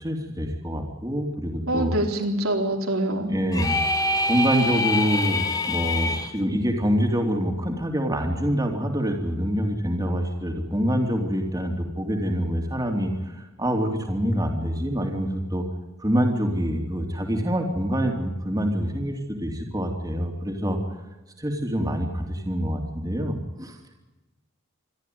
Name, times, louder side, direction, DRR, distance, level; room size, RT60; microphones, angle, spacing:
voice 1, 0.0-1.9 3.3-3.8 4.3-15.6 16.0-20.8 21.4-23.8, equal, 15° right, 2 dB, 3.0 m, -26 dB
voice 2, 1.7-3.3, right 1 dB, 85° right, 2 dB, 4.2 m, -25 dB
sound 1, 3.5-6.3, left 2 dB, 15° left, 1.5 m, -25 dB
27.5 x 12.5 x 9.5 m, 1.1 s
head